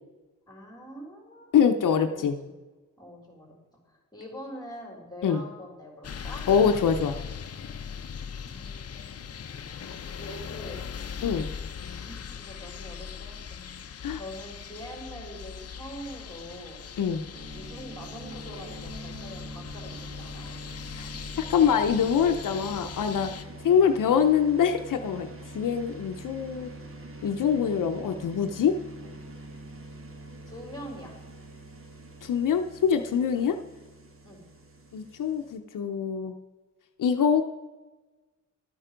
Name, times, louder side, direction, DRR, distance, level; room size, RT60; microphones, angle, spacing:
voice 1, 0.5-1.6 1.9-2.5 3.0-3.5 3.9-6.4 8.4-9.2 10.1-10.8 11.8-13.5 14.1-16.8 17.5-20.5 23.4-23.7 29.0-29.2 30.5-31.1 33.3-33.5 34.2-34.4, equal, 10° left, 0 dB, 4.0 m, -44 dB
voice 2, 1.5-2.4 5.2-5.4 6.5-7.2 11.2-11.5 14.0-14.2 17.0-17.2 21.0-21.1 21.4-23.3 23.6-25.3 25.5-26.7 27.2-28.8 32.2-33.6 34.9-36.3 37.0-37.4, left 7 dB, 80° left, 6 dB, 0.8 m, -24 dB
sound 1, 6.0-23.5, left 7 dB, 50° left, 0.8 m, -40 dB
sound 2, 17.3-35.6, right 1 dB, 45° right, 1.5 m, -44 dB
12.0 x 9.0 x 5.1 m, 1.2 s
wide cardioid pair, 125°, 31 cm